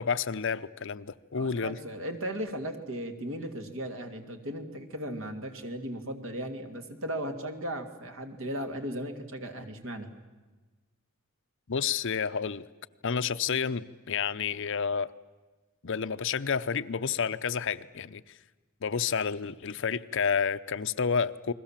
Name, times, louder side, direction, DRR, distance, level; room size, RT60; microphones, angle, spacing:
voice 1, 0.0-1.8 11.7-12.7 13.0-15.1 15.8-18.2 18.8-21.5, left 6 dB, 60° left, 13 dB, 0.7 m, -30 dB
voice 2, 1.3-10.1, right 1 dB, 65° right, 6 dB, 2.6 m, -36 dB
30.0 x 21.5 x 7.4 m, 1.3 s
head